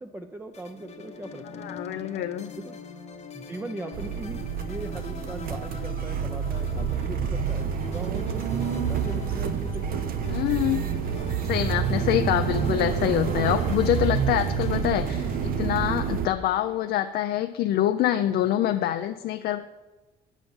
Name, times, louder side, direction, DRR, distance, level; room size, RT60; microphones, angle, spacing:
voice 1, 0.0-1.8 2.5-2.8 3.3-10.0 12.3-12.7, right 2 dB, 10° right, 4 dB, 0.5 m, -39 dB
sound 1, 0.5-17.9, left 5 dB, 40° left, 0.8 m, -43 dB
voice 2, 1.6-2.5 10.3-10.9 11.4-19.6, left 12 dB, 70° left, 8 dB, 0.4 m, -25 dB
sound 2, 3.9-16.3, right 7 dB, 60° right, 0.7 m, -28 dB
9.2 x 7.2 x 5.4 m, 1.2 s
cardioid pair, 110°, 17 cm